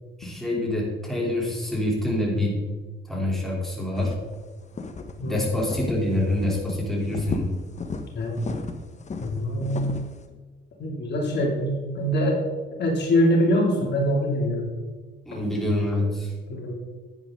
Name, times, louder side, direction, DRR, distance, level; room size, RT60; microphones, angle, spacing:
voice 1, 0.2-2.7 3.1-4.2 5.2-7.5 15.2-16.3, left 1 dB, ahead, -3 dB, 3.3 m, -26 dB
sound 1, 4.0-4.3 4.7-5.1 5.6-6.1 6.4-6.7 7.1-8.0 8.4-10.1, left 4 dB, 35° left, 1.2 m, -33 dB
voice 2, 9.2-10.0 10.8-12.5 12.8-14.7 16.5-16.8, equal, 60° left, -1 dB, 2.6 m, -24 dB
9.8 x 9.8 x 3.8 m, 1.3 s
cardioid pair, 90°, 20 cm